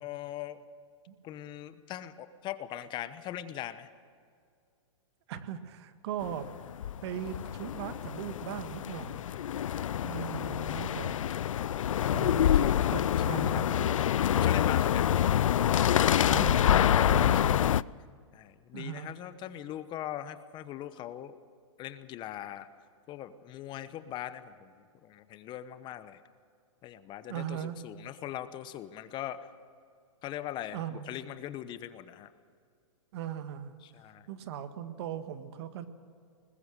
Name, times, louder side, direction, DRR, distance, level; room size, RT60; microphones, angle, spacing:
voice 1, 0.0-0.6 1.2-3.9 9.4-10.3 11.7-12.9 13.3-13.8 14.3-15.1 17.1-17.3 18.3-21.3 21.8-22.7 23.1-24.7 25.0-26.2 26.8-29.4 30.2-32.3 33.9-34.3, left 12 dB, 30° left, 13 dB, 1.0 m, -41 dB
voice 2, 5.3-6.5 7.0-9.3 10.0-11.3 12.1-14.0 16.3-16.8 17.1-17.7 18.7-19.1 27.3-27.8 30.7-31.1 33.1-33.7 34.3-35.9, right 9 dB, 55° right, 10 dB, 1.7 m, -39 dB
sound 1, 6.2-17.8, left 10 dB, 80° left, 0.4 m, -26 dB
21.0 x 20.5 x 6.6 m, 2.2 s
hypercardioid pair, 130°, 17 cm